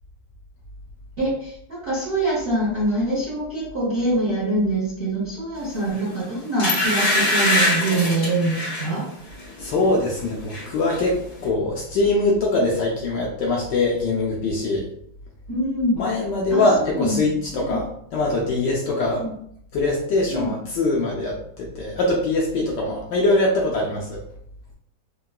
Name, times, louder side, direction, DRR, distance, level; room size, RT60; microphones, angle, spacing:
voice 1, 1.2-9.1 15.5-16.0 16.5-17.8 19.2-19.3 20.3-20.6, right 1 dB, 55° right, -8 dB, 0.6 m, -24 dB
sound 1, 5.9-6.1 6.6-8.9 9.4-9.6 9.9-10.7 10.9-11.0, left 1 dB, 55° left, 1.4 m, -22 dB
voice 2, 9.6-14.9 16.0-19.2 19.7-24.2, left 2 dB, 70° left, -2 dB, 1.0 m, -22 dB
3.8 x 2.1 x 2.2 m, 0.67 s
omnidirectional pair, 2.3 m